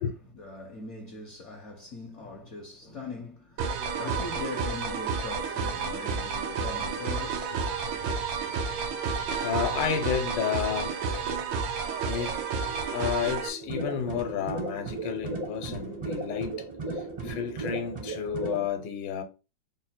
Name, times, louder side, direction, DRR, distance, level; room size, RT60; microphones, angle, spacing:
voice 1, 0.0-7.9, left 3 dB, 60° left, 0.8 m, -41 dB
sound 1, 3.6-13.5, right 5 dB, 90° right, 1.3 m, -31 dB
voice 2, 9.4-11.0 12.1-12.4 12.9-16.7 16.9-19.2, left 8 dB, 75° left, 1.3 m, -31 dB
sound 2, 12.0-17.8, right 5 dB, 75° right, 1.1 m, -45 dB
sound 3, 13.6-18.7, right 2 dB, 40° right, 0.5 m, -36 dB
3.8 x 2.1 x 4.2 m
omnidirectional pair, 2.0 m